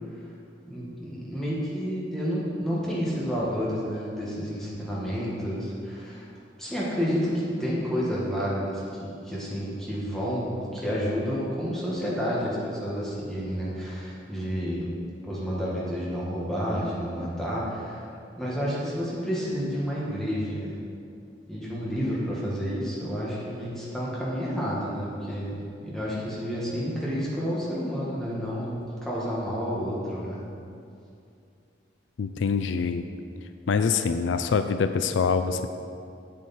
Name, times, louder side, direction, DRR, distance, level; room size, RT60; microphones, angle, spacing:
voice 1, 0.7-6.3 6.6-14.8 15.2-18.1 18.4-20.8 21.5-28.7 29.0-30.4, equal, ahead, -7 dB, 1.7 m, -30 dB
voice 2, 32.2-33.1 33.7-35.7, left 5 dB, 80° left, 9 dB, 0.4 m, -25 dB
8.1 x 7.4 x 4.3 m, 2.5 s
head